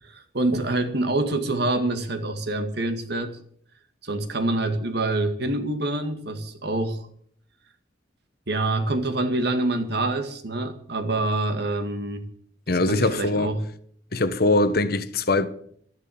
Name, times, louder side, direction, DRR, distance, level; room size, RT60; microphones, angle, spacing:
voice 1, 0.0-3.4 4.0-7.1 8.5-12.2 12.7-13.6, right 2 dB, 65° right, 2.1 m, -26 dB
voice 2, 12.7-13.5 14.1-15.5, left 2 dB, 55° left, 1.2 m, -22 dB
13.0 x 11.0 x 8.6 m
head